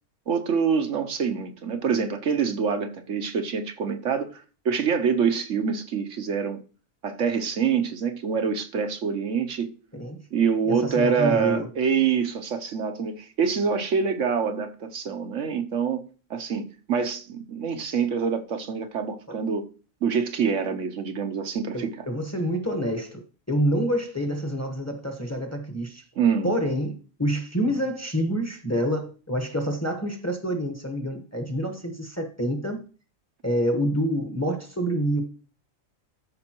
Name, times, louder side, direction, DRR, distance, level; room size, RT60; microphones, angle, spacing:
voice 1, 0.3-6.6 7.0-9.7 10.3-16.0 16.3-19.7 20.0-21.9 26.2-26.5, right 6 dB, 65° right, 1.2 m, -25 dB
voice 2, 10.6-11.7 21.7-26.0 26.4-32.8 33.4-35.2, equal, 10° left, 1.1 m, -27 dB
13.0 x 5.3 x 3.0 m
omnidirectional pair, 1.4 m